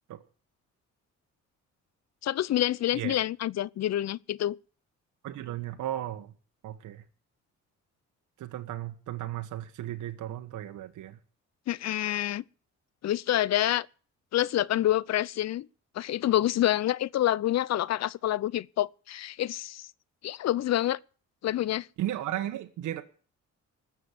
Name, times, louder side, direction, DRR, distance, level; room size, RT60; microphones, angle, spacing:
voice 1, 2.2-4.6 11.7-12.4 13.0-13.9 14.3-15.7 16.0-19.9 20.2-21.0 21.4-21.9, left 13 dB, 60° left, 0.6 m, -27 dB
voice 2, 5.2-6.3 6.6-7.0 8.4-11.2 22.0-23.0, right 13 dB, 80° right, 1.4 m, -35 dB
20.0 x 7.3 x 8.1 m
cardioid pair, 90°, 30 cm